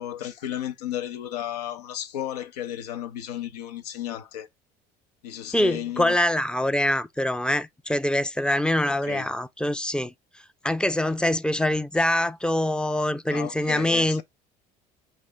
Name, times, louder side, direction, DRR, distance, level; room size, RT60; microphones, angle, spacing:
voice 1, 0.0-4.5 5.2-6.2 8.9-9.3 13.3-14.2, left 11 dB, 85° left, 0.6 m, -34 dB
voice 2, 5.5-10.1 10.6-14.2, left 1 dB, 5° left, 0.4 m, -24 dB
5.3 x 2.5 x 3.4 m
hypercardioid pair, 70°, 20 cm